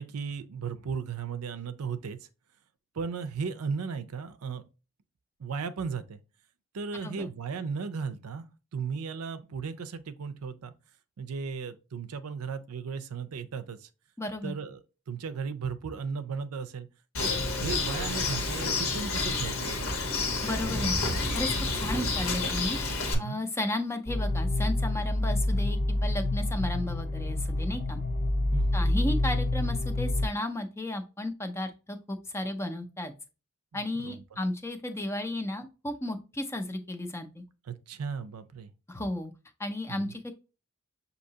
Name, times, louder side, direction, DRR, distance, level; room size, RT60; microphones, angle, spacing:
voice 1, 0.0-2.2 2.9-4.6 5.4-6.2 6.7-8.4 8.7-10.7 11.2-13.9 14.4-14.8 15.1-16.9 17.2-19.9 23.1-23.4 28.5-28.9 33.7-34.2 37.7-38.7 39.9-40.1, right 5 dB, 90° right, 0.5 m, -36 dB
voice 2, 14.2-14.5 20.4-21.0 21.3-22.8 23.2-28.0 28.7-33.1 33.7-37.4 38.9-39.3 39.6-40.3, left 1 dB, 10° left, 0.4 m, -34 dB
Bird, 17.1-23.1, left 3 dB, 75° left, 1.2 m, -29 dB
sound 1, 24.1-30.3, left 1 dB, 40° left, 0.8 m, -27 dB
6.4 x 2.8 x 2.7 m
head